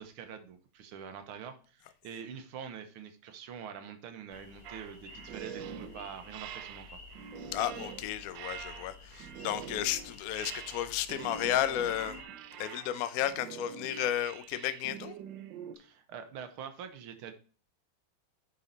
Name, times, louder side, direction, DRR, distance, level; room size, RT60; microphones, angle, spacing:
voice 1, 0.0-6.9 15.8-17.3, right 7 dB, 85° right, 1.9 m, -45 dB
sound 1, 4.3-12.2, left 3 dB, 20° left, 1.7 m, -52 dB
sound 2, 4.6-15.8, right 7 dB, 70° right, 1.3 m, -45 dB
voice 2, 7.5-12.2 12.6-15.1, left 12 dB, 75° left, 0.8 m, -33 dB
7.2 x 5.4 x 4.0 m
omnidirectional pair, 2.3 m